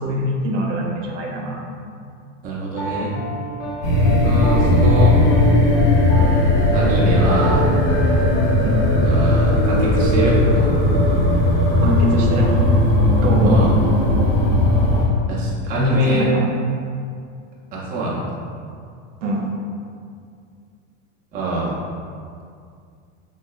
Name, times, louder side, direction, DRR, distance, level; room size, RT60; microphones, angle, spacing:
voice 1, 0.0-1.6 8.6-8.8 11.8-12.5 13.2-13.6 15.7-16.5 19.2-19.5, equal, 80° right, -2 dB, 0.7 m, -23 dB
voice 2, 2.4-3.1 4.2-5.2 6.7-7.7 9.0-10.8 13.4-13.7 15.3-16.3 17.7-18.3 21.3-21.8, right 1 dB, 25° right, -6 dB, 0.5 m, -24 dB
Piano, 2.8-9.6, equal, 90° left, 0.8 m, -31 dB
sound 1, 3.8-15.1, left 1 dB, 45° left, 1.0 m, -16 dB
3.1 x 2.7 x 2.3 m, 2.3 s
supercardioid pair, 135°, 36 cm